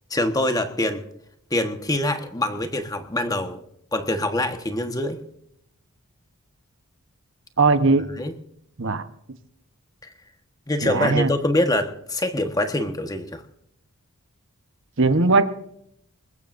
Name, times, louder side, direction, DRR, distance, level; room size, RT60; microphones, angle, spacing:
voice 1, 0.1-1.0 1.5-3.6 3.9-5.2 8.2-8.3 10.0-10.1 10.7-13.4, left 1 dB, 15° left, 7 dB, 1.3 m, -24 dB
voice 2, 7.6-8.1 8.8-9.0 10.8-11.3 15.0-15.5, right 3 dB, 55° right, 10 dB, 1.1 m, -19 dB
21.0 x 20.0 x 2.6 m, 0.73 s
head